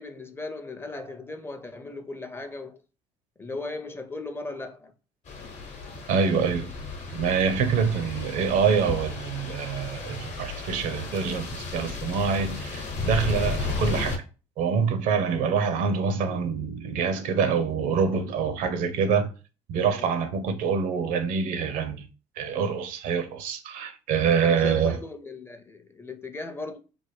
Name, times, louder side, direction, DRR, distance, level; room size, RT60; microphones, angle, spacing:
voice 1, 0.0-2.8 3.4-4.9 20.0-20.2 24.4-26.8, left 3 dB, 15° left, 0.5 m, -37 dB
sound 1, 5.3-14.2, left 3 dB, 50° left, 0.9 m, -34 dB
voice 2, 6.1-6.7 7.1-14.2 14.6-19.3 19.7-22.0 22.4-25.0, right 6 dB, 70° right, 0.5 m, -25 dB
3.4 x 2.1 x 3.1 m
supercardioid pair, 75°, 14 cm